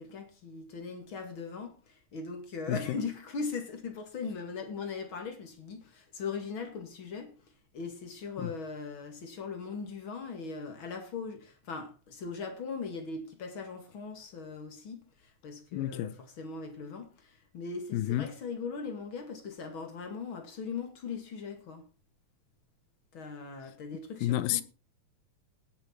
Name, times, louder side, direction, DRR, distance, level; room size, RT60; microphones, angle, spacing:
voice 1, 0.0-7.3 7.7-21.8 23.1-24.6, left 4 dB, 40° left, 2.6 m, -39 dB
voice 2, 15.7-16.1 17.9-18.3 24.2-24.6, left 13 dB, 80° left, 2.4 m, -30 dB
18.5 x 7.0 x 4.5 m
omnidirectional pair, 4.2 m